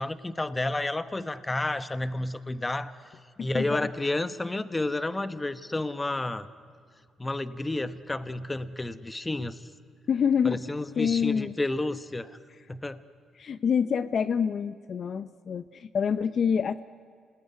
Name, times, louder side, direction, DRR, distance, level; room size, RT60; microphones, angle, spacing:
voice 1, 0.0-2.9 3.4-6.5 7.2-9.7 10.4-12.4 12.7-13.0, left 2 dB, 15° left, 12 dB, 1.1 m, -31 dB
voice 2, 3.5-3.9 10.1-10.6 11.0-11.5 13.4-16.8, left 7 dB, 55° left, 12 dB, 0.7 m, -26 dB
28.0 x 20.0 x 9.5 m, 2.1 s
cardioid pair, 90°, 0 cm